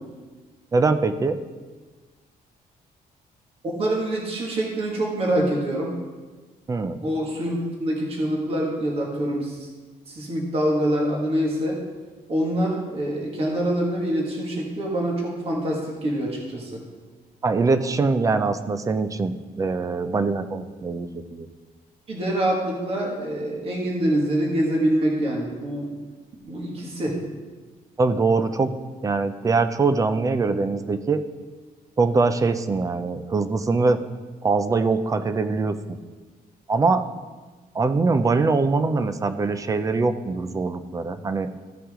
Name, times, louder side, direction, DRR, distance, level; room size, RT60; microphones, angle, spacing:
voice 1, 0.7-1.4 6.7-7.0 17.4-21.5 28.0-28.7 29.0-31.2 32.0-34.0 34.4-36.0 36.7-37.0 37.7-41.5, right 3 dB, 20° right, 10 dB, 0.4 m, -23 dB
voice 2, 3.8-5.9 7.0-9.7 10.1-11.8 12.3-16.8 22.1-25.9 26.5-27.2, right 1 dB, 40° right, -2 dB, 1.9 m, -25 dB
15.0 x 5.8 x 3.7 m, 1.3 s
cardioid pair, 170°, 16 cm